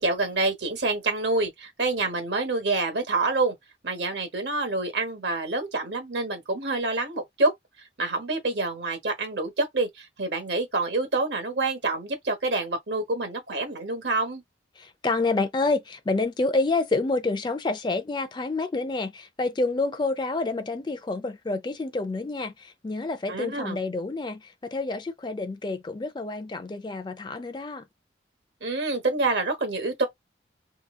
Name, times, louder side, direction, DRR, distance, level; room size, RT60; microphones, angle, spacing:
voice 1, 0.0-3.5 3.8-7.5 8.0-14.4 23.3-23.8 28.6-30.1, right 3 dB, 80° right, 1.2 m, -27 dB
voice 2, 14.8-27.8, left 3 dB, 25° left, 0.4 m, -28 dB
2.8 x 2.3 x 3.5 m
head